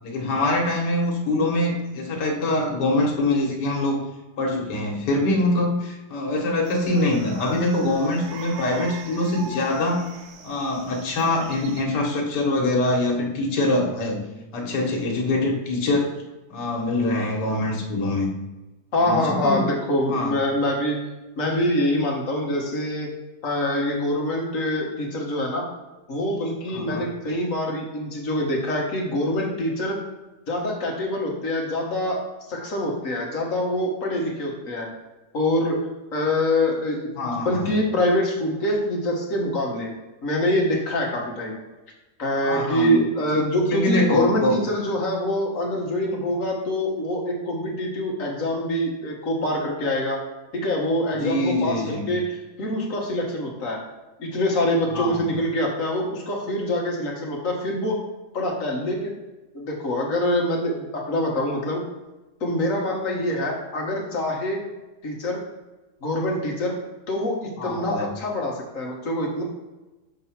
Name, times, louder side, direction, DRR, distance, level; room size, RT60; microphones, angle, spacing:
voice 1, 0.0-4.0 4.4-10.0 10.4-14.2 14.5-16.1 16.5-18.3 19.0-19.7 20.1-20.4 26.7-27.1 37.2-37.7 42.4-43.0 43.3-44.6 51.2-52.0 54.9-55.2 67.6-68.1, left 2 dB, 80° left, 0 dB, 1.8 m, -24 dB
sound 1, 6.6-11.8, right 3 dB, 70° right, 1.2 m, -41 dB
voice 2, 18.9-21.0 21.4-23.1 23.4-25.7 26.1-30.0 30.5-32.2 32.5-34.9 35.3-35.8 36.1-39.9 40.2-41.6 42.2-50.2 50.5-53.8 54.2-58.0 58.3-59.1 59.5-61.8 62.4-64.6 65.0-65.4 66.0-66.7 67.1-69.4, left 1 dB, 50° left, -1 dB, 1.6 m, -25 dB
6.7 x 2.9 x 5.7 m, 1.1 s
omnidirectional pair, 1.8 m